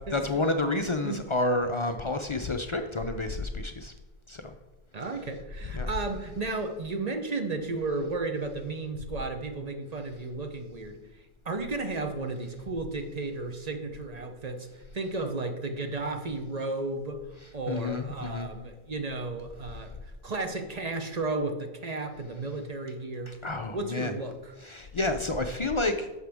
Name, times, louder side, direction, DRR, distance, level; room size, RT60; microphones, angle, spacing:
voice 1, 0.1-3.9 4.3-4.5 5.7-5.9 17.7-18.5 23.3-24.1 24.6-26.2, left 2 dB, 40° left, 6 dB, 0.4 m, -29 dB
voice 2, 4.9-11.0 11.4-14.7 14.9-17.2 17.5-23.4 23.7-24.5, right 3 dB, 40° right, 5 dB, 0.8 m, -33 dB
11.0 x 6.4 x 3.5 m, 1.1 s
omnidirectional pair, 1.1 m